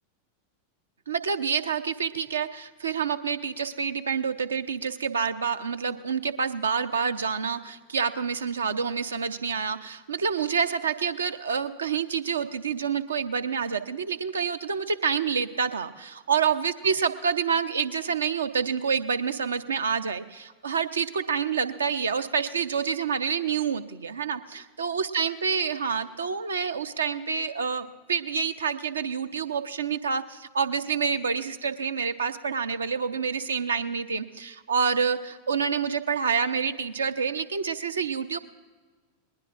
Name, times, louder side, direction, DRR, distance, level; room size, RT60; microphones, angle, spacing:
voice 1, 1.1-38.4, right 6 dB, 70° right, 10 dB, 0.7 m, -28 dB
20.5 x 20.0 x 2.5 m, 1.4 s
figure-of-eight pair, 90°, 0 cm